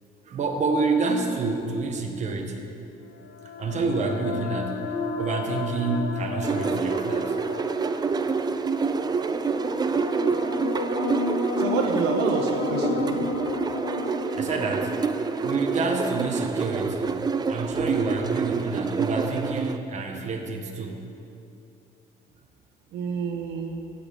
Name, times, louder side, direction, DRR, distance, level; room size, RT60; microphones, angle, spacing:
voice 1, 0.3-2.7 3.6-7.4 14.3-15.0 15.4-17.2 17.5-21.0, right 3 dB, 45° right, 3 dB, 1.5 m, -28 dB
sound 1, 3.1-16.8, left 5 dB, 85° left, 1.1 m, -33 dB
sound 2, 6.4-19.8, right 5 dB, 25° right, 0.5 m, -27 dB
voice 2, 11.6-13.3 22.9-23.7, right 5 dB, 85° right, 2 dB, 1.3 m, -28 dB
15.0 x 5.9 x 8.4 m, 2.7 s
cardioid pair, 110°, 17 cm